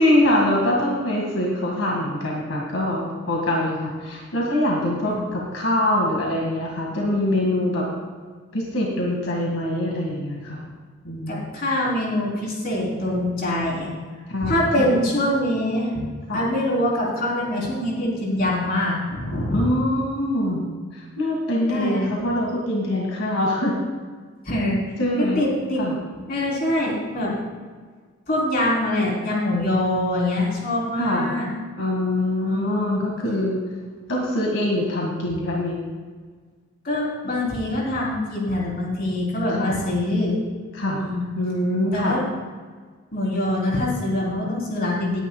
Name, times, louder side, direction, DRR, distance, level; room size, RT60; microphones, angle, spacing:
voice 1, 0.0-7.8 8.5-10.7 11.0-11.5 14.3-15.0 16.3-16.4 19.5-23.8 25.0-25.4 25.8-26.0 31.0-31.4 31.8-33.6 34.1-35.8 37.2-37.3 39.5-39.7 40.7-41.0 41.4-42.2, left 1 dB, 85° left, -2 dB, 2.0 m, -24 dB
voice 2, 11.3-13.9 14.4-15.9 16.3-19.7 21.7-22.1 24.4-25.8 26.3-27.3 28.3-31.5 32.4-33.0 36.8-40.4 40.9-41.2 41.9-42.2 43.1-45.2, left 1 dB, 50° left, -4 dB, 3.8 m, -24 dB
19.0 x 10.0 x 2.3 m, 1.5 s
head